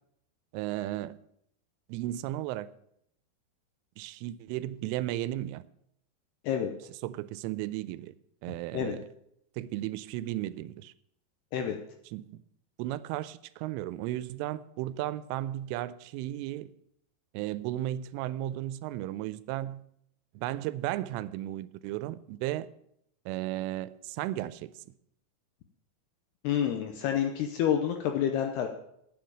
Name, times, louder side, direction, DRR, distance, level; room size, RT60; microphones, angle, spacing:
voice 1, 0.5-1.2 1.9-2.7 4.0-5.6 7.0-8.1 8.4-9.1 9.6-10.9 12.1-12.4 12.8-16.7 17.3-19.8 20.4-22.7 23.3-24.7, right 14 dB, 90° right, 3.1 m, -34 dB
voice 2, 26.4-28.7, left 9 dB, 85° left, 2.4 m, -28 dB
9.5 x 7.3 x 8.8 m
omnidirectional pair, 5.6 m